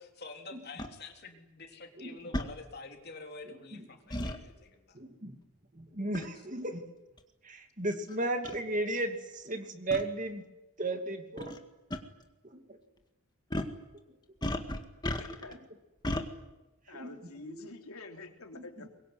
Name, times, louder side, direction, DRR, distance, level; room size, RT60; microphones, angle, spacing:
voice 1, 0.0-5.0, left 3 dB, 45° left, 3 dB, 3.6 m, -47 dB
sound 1, 0.8-0.9 2.3-2.5 4.1-4.4 6.1-6.4 7.2-7.3 8.1-8.2 8.4-8.6 9.9-10.0 11.4-11.6 11.9-12.0 13.5-13.8 14.4-15.5 16.0-16.3, left 1 dB, 20° left, 1.9 m, -34 dB
voice 2, 4.9-5.4 5.7-6.8 7.4-10.4 10.8-11.5 12.4-12.6 15.5-15.6 16.9-17.2 17.4-17.7 18.5-18.9, right 2 dB, 35° right, 5 dB, 2.7 m, -35 dB
voice 3, 15.2-15.6 16.9-18.9, left 2 dB, 85° left, 4 dB, 3.5 m, -47 dB
24.5 x 22.5 x 9.7 m, 1.0 s
head